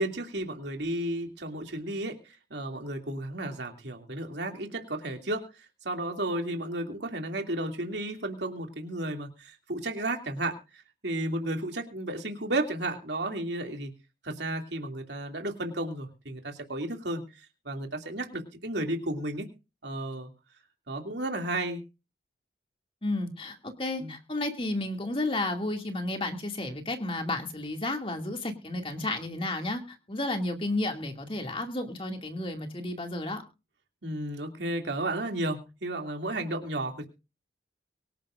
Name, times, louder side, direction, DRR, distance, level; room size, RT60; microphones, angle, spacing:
voice 1, 0.0-13.9 14.2-19.5 19.8-20.3 20.9-21.8 24.0-24.1 34.0-37.1, right 1 dB, 75° right, 3 dB, 2.7 m, -33 dB
voice 2, 23.0-33.4, left 2 dB, 30° left, 4 dB, 2.5 m, -32 dB
24.0 x 11.0 x 2.6 m, 0.30 s
head